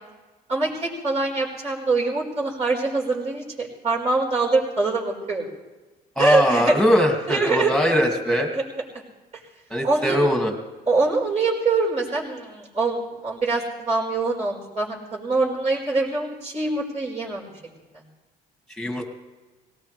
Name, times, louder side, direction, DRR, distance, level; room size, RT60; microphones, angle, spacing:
voice 1, 0.5-5.5 6.2-6.8 7.3-7.7 8.5-8.6 9.8-10.2 10.9-17.5, right 3 dB, 40° right, -3 dB, 4.8 m, -24 dB
voice 2, 6.2-8.5 9.7-10.5 18.8-19.1, equal, ahead, 3 dB, 2.3 m, -21 dB
18.5 x 18.5 x 3.4 m, 1.2 s
cardioid pair, 110°, 17 cm